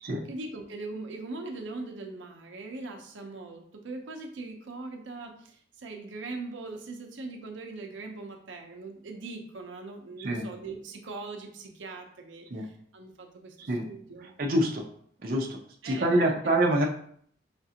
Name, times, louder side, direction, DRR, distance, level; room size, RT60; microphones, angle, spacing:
voice 1, 0.3-14.3 15.8-16.4, right 3 dB, 90° right, 3 dB, 0.6 m, -41 dB
voice 2, 14.4-14.8 15.2-15.6 15.8-16.9, right 1 dB, 50° right, 0 dB, 0.5 m, -25 dB
5.0 x 2.4 x 2.8 m, 0.62 s
head